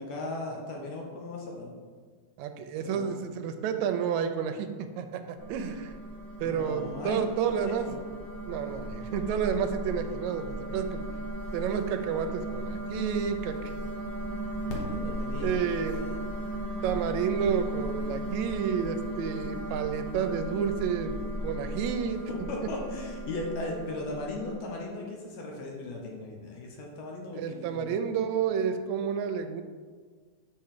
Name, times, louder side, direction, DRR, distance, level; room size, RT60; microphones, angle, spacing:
voice 1, 0.0-1.7 2.8-3.2 6.4-7.3 7.5-8.0 14.7-16.2 22.5-28.1, left 2 dB, 65° left, 0 dB, 2.0 m, -37 dB
voice 2, 2.4-5.9 6.4-7.9 8.5-11.1 11.5-13.7 14.9-15.0 15.4-16.1 16.8-21.2 21.4-22.3 27.3-29.6, right 7 dB, 80° right, 7 dB, 1.7 m, -30 dB
sound 1, 5.4-24.6, right 1 dB, 80° left, 0.9 m, -36 dB
5.7 x 5.4 x 6.6 m, 1.6 s
omnidirectional pair, 3.6 m